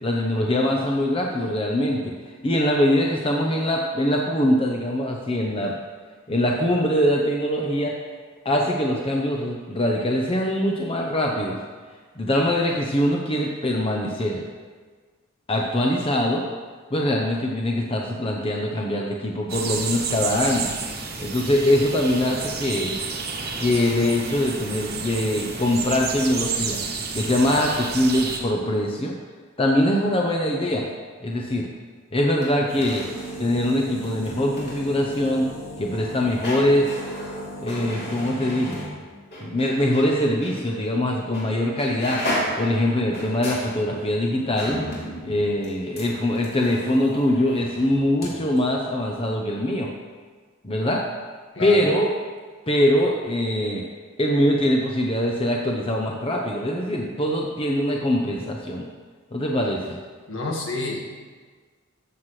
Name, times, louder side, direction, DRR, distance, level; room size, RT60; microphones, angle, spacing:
voice 1, 0.0-5.7 6.3-7.9 8.4-11.6 12.2-14.4 15.5-16.4 16.9-20.7 21.2-23.0 23.6-26.8 27.1-29.1 29.6-30.8 31.2-31.7 32.1-33.0 33.4-35.5 35.8-36.9 37.6-38.8 39.4-42.2 42.6-44.8 45.2-49.9 50.6-51.0 51.6-52.1 52.7-53.8 54.2-58.9 59.3-60.0, left 1 dB, 25° left, 0 dB, 0.7 m, -23 dB
sound 1, 19.5-28.4, right 5 dB, 50° right, 1.2 m, -30 dB
sound 2, 32.3-40.1 40.4-40.6 41.3-41.5 41.8-48.3 48.5-48.6, equal, 50° left, 3.3 m, -34 dB
voice 2, 60.3-61.0, left 3 dB, 65° left, -1 dB, 1.7 m, -28 dB
13.5 x 7.5 x 3.2 m, 1.5 s
head